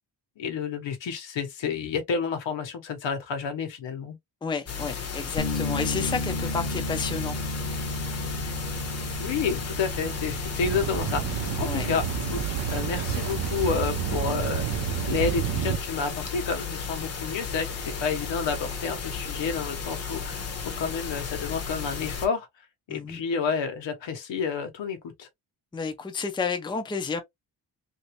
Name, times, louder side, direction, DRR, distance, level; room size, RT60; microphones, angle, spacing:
voice 1, 0.4-4.2 9.2-12.0 12.3-14.7 15.1-22.5 22.9-25.3, left 5 dB, 85° left, 1.1 m, -30 dB
voice 2, 4.4-7.4 11.6-11.9 22.9-23.2 25.7-27.2, left 5 dB, 10° left, 0.4 m, -31 dB
sound 1, 4.7-22.3, left 6 dB, 35° left, 0.8 m, -34 dB
Bass guitar, 5.4-11.6, left 1 dB, 60° left, 0.9 m, -33 dB
sound 2, 10.6-15.8, right 12 dB, 65° right, 0.5 m, -29 dB
3.0 x 2.7 x 2.9 m
wide cardioid pair, 170°, 43 cm